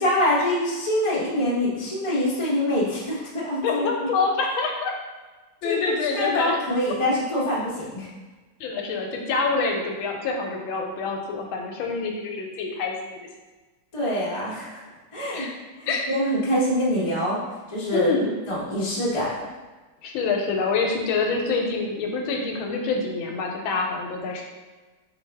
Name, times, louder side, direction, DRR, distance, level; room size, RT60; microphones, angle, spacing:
voice 1, 0.0-3.9 5.6-5.8 6.1-8.1 13.9-14.8 15.1-15.5 15.8-17.4 17.7-18.1 18.5-19.3, left 1 dB, 40° left, -6 dB, 0.4 m, -25 dB
voice 2, 3.6-4.9 5.6-6.6 8.6-13.3 15.3-15.5 15.9-16.0 17.9-18.3 20.0-24.4, left 4 dB, 80° left, 2 dB, 1.4 m, -26 dB
3.9 x 3.2 x 3.3 m, 1.2 s
omnidirectional pair, 2.3 m